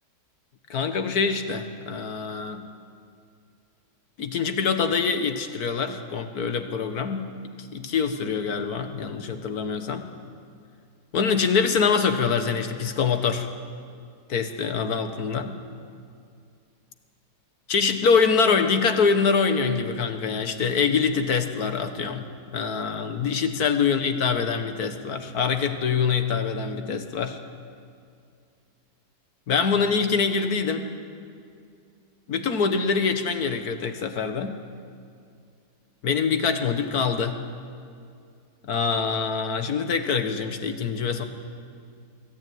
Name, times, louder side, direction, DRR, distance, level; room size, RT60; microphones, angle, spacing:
voice 1, 0.7-2.7 4.2-7.3 7.6-10.1 11.1-13.5 14.3-15.6 17.7-22.3 22.5-27.4 29.5-30.9 32.3-34.6 36.0-37.4 38.7-41.2, left 5 dB, 65° left, 7 dB, 1.7 m, -24 dB
22.0 x 13.5 x 9.3 m, 2.4 s
omnidirectional pair, 1.8 m